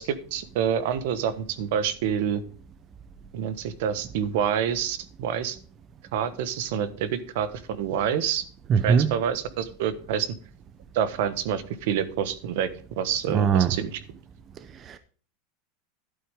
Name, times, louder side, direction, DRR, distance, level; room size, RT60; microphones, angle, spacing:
voice 1, 0.0-2.4 3.3-5.6 6.1-8.4 8.8-10.3 10.9-14.0, right 8 dB, 65° right, 1.2 m, -27 dB
voice 2, 8.7-9.1 13.3-13.7 14.9-15.0, right 6 dB, 25° right, 0.6 m, -20 dB
11.5 x 8.7 x 3.6 m
supercardioid pair, 165°, 0 cm